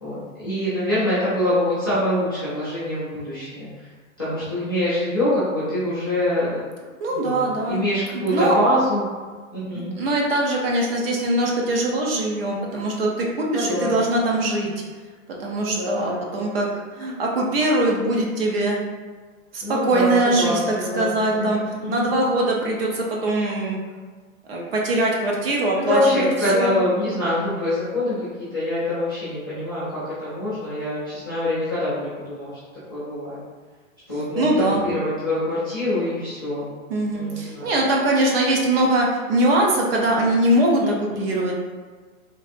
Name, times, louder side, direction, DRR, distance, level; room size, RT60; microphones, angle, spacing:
voice 1, 0.0-3.7 4.2-6.6 7.1-9.0 9.5-9.9 13.5-14.2 15.6-16.3 19.6-22.1 25.9-28.2 28.5-32.5 32.9-33.4 34.1-36.7 37.1-37.7 40.8-41.3, left 1 dB, 20° left, -15 dB, 0.3 m, -25 dB
voice 2, 7.0-7.8 8.1-8.5 10.0-14.7 15.4-16.7 17.0-18.8 19.5-21.6 21.9-23.8 24.5-26.3 26.5-26.8 34.4-34.8 36.9-41.6, right 1 dB, 45° right, -1 dB, 0.6 m, -22 dB
3.3 x 2.4 x 2.5 m, 1.5 s
hypercardioid pair, 155°, 42 cm